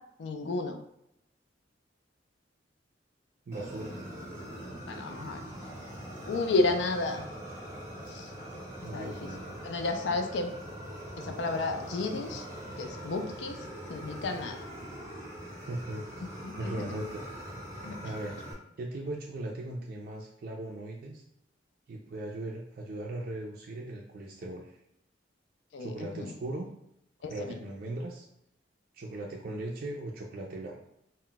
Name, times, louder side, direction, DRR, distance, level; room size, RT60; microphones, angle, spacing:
voice 1, 0.2-0.8 4.9-5.4 6.3-7.2 8.1-8.3 8.9-9.1 9.6-10.5 11.2-12.4 12.8-13.6 13.9-14.6 16.4-17.0 17.8-18.0 25.7-26.3 27.2-27.5, left 3 dB, 70° left, 5 dB, 0.4 m, -32 dB
Fire, 3.5-18.5, equal, 15° right, 0.6 m, -42 dB
voice 2, 3.5-4.0 8.8-9.6 15.7-16.0 16.6-17.2 18.0-18.4 18.8-21.2 21.9-24.8 25.8-26.7 27.2-28.3 28.9-30.9, right 1 dB, 55° right, -1 dB, 0.3 m, -38 dB
2.2 x 2.1 x 3.8 m, 0.79 s
head